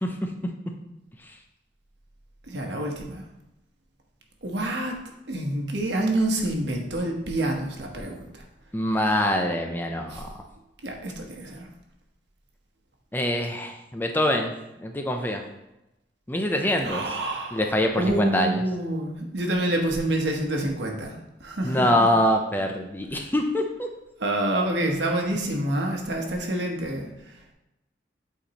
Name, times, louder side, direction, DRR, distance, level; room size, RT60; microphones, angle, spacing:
voice 1, 2.5-3.2 4.4-5.0 5.3-8.4 10.1-10.2 10.8-11.7 16.8-17.7 17.9-22.1 23.1-23.2 24.2-27.5, right 1 dB, 75° right, 1 dB, 1.1 m, -27 dB
voice 2, 8.7-10.3 13.1-14.5 14.8-15.4 16.3-17.0 17.5-18.6 21.6-23.9, left 1 dB, 10° left, 3 dB, 0.5 m, -24 dB
8.1 x 4.2 x 2.9 m, 0.92 s
head